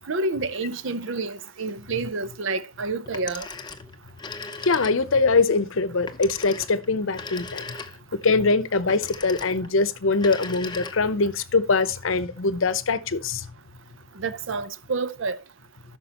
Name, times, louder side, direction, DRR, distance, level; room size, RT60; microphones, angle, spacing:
voice 1, 0.1-3.5 14.2-15.4, right 3 dB, 65° right, 0.7 m, -29 dB
Telephone, 3.1-5.3 6.1-8.2 8.9-9.7 10.1-11.3, left 4 dB, 20° left, 0.7 m, -38 dB
voice 2, 4.7-7.6 8.1-13.5, left 3 dB, 70° left, 0.8 m, -23 dB
14.0 x 6.2 x 2.9 m
head